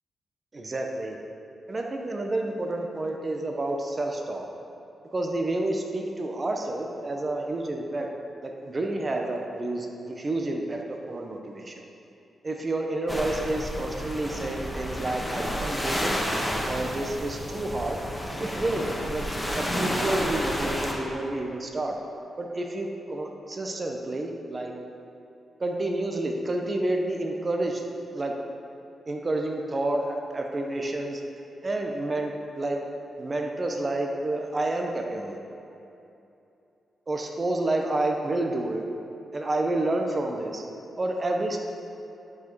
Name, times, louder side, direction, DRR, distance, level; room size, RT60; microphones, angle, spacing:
voice 1, 0.5-1.2 1.7-4.4 5.1-8.1 8.4-11.8 12.4-16.2 16.7-18.0 18.4-18.8 19.1-19.2 19.5-21.9 22.4-24.7 25.6-27.8 28.1-28.3 29.1-31.2 31.6-32.8 33.2-35.4 37.1-38.8 39.3-40.6 41.0-41.7, right 2 dB, 40° right, 2 dB, 0.9 m, -29 dB
sound 1, 13.1-20.9, equal, 5° left, 1.6 m, -30 dB
11.0 x 5.0 x 4.6 m, 2.8 s
cardioid pair, 60°, 0 cm